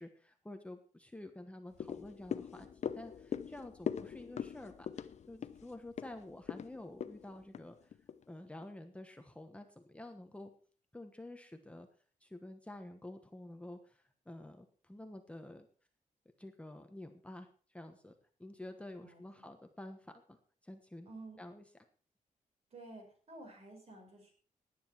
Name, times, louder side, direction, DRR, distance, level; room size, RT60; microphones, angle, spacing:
voice 1, 0.0-7.9 8.3-10.5 10.9-11.9 12.2-15.7 16.4-18.1 18.4-21.1 21.4-21.6, left 1 dB, 10° left, 6 dB, 1.2 m, -50 dB
sound 1, 1.7-8.2 8.6-8.7, left 8 dB, 55° left, 0.8 m, -42 dB
voice 2, 21.1-21.4 22.7-24.3, right 2 dB, 50° right, 2 dB, 5.9 m, -51 dB
18.0 x 9.6 x 4.6 m, 0.43 s
wide cardioid pair, 120°, 14 cm